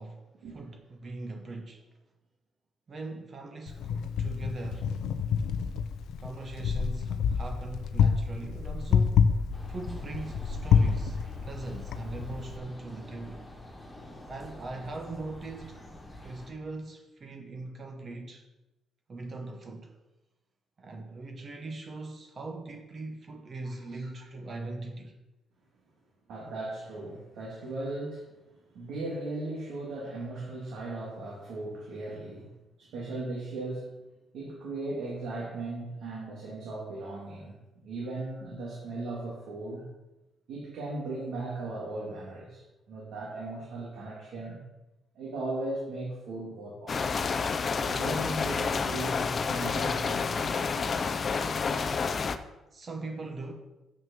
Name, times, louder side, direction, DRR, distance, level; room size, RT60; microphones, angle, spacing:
voice 1, 0.0-1.9 2.9-4.9 6.2-9.3 9.7-13.5 14.3-15.8 16.2-18.4 19.1-19.9 20.8-25.1 52.7-53.5, right 2 dB, 30° right, 3 dB, 1.0 m, -40 dB
Wind, 3.7-12.6, left 6 dB, 85° left, 0.6 m, -28 dB
sound 1, 9.5-16.5, left 1 dB, 10° left, 2.0 m, -47 dB
voice 2, 23.6-24.1 26.3-28.3 28.7-32.5 32.8-34.0 34.3-37.5 37.8-39.8 40.5-42.6 42.9-44.6 45.1-47.3 47.9-51.1, right 2 dB, 75° right, -4 dB, 2.4 m, -37 dB
sound 2, 46.9-52.4, left 5 dB, 30° left, 0.5 m, -29 dB
7.7 x 6.4 x 6.2 m, 1.0 s
cardioid pair, 165°, 0 cm